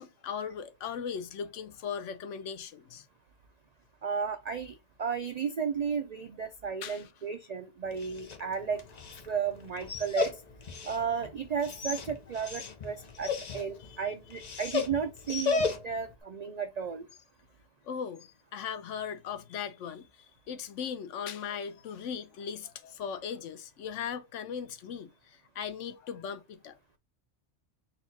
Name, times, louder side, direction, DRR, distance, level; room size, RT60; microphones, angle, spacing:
voice 1, 0.0-3.1 6.8-7.1 13.8-14.0 17.8-26.8, left 7 dB, 85° left, 1.0 m, -38 dB
voice 2, 4.0-8.8 9.3-10.3 10.8-17.1, right 6 dB, 65° right, 0.4 m, -34 dB
Dog, 7.8-16.1, left 5 dB, 40° left, 0.7 m, -36 dB
4.2 x 2.3 x 4.0 m
omnidirectional pair, 1.2 m